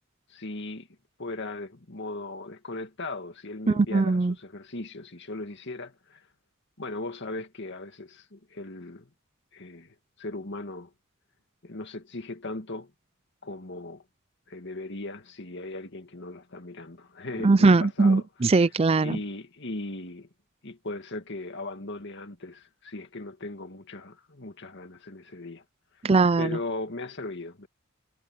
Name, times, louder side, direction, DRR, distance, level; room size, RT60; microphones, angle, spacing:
voice 1, 0.3-0.9 1.2-6.3 6.8-9.1 9.5-10.9 11.6-12.9 13.4-14.0 14.5-18.3 19.0-20.3 20.6-25.6 26.4-27.7, left 2 dB, 55° left, 2.2 m, -38 dB
voice 2, 3.7-4.3 17.4-19.2 26.0-26.6, right 3 dB, 30° right, 0.5 m, -20 dB
head